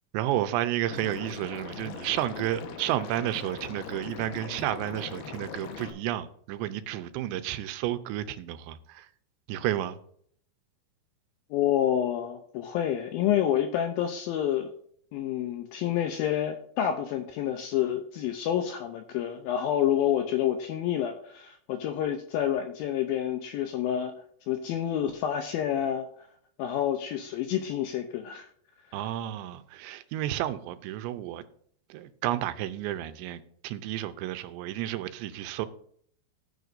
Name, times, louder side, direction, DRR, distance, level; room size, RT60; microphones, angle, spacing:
voice 1, 0.1-9.1 9.5-10.0 28.9-31.4 31.9-35.7, right 13 dB, 85° right, 2.9 m, -31 dB
Liquid, 0.9-5.9, left 7 dB, 70° left, 3.0 m, -40 dB
voice 2, 11.5-14.7 15.1-24.1 24.5-26.1 26.6-28.5, left 10 dB, 90° left, 2.1 m, -28 dB
13.0 x 9.4 x 2.6 m
omnidirectional pair, 5.0 m